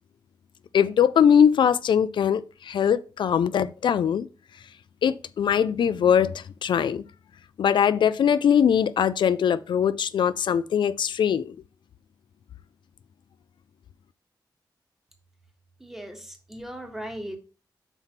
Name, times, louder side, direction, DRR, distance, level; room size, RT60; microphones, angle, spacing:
voice 1, 0.7-4.3 5.0-7.0 7.6-11.5, left 8 dB, 85° left, 0.3 m, -21 dB
voice 2, 15.8-17.4, right 1 dB, 5° right, 1.3 m, -38 dB
5.8 x 4.5 x 5.8 m
wide cardioid pair, 140°, 8 cm